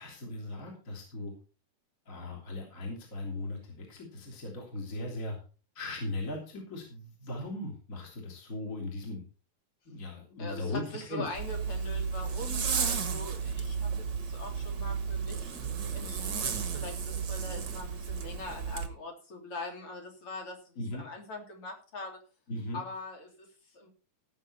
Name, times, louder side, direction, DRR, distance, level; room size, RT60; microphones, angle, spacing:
voice 1, 0.0-1.3 2.1-5.4 5.7-9.2 9.8-11.2 20.8-21.0 22.5-22.8, left 2 dB, 25° left, -1 dB, 3.2 m, -38 dB
voice 2, 10.4-13.9 14.2-15.6 15.9-22.2 22.7-23.9, left 2 dB, 45° left, 2 dB, 4.0 m, -42 dB
Zipper (clothing), 11.3-18.9, right 6 dB, 45° right, 1.6 m, -33 dB
17.0 x 7.5 x 4.3 m, 0.36 s
omnidirectional pair, 3.6 m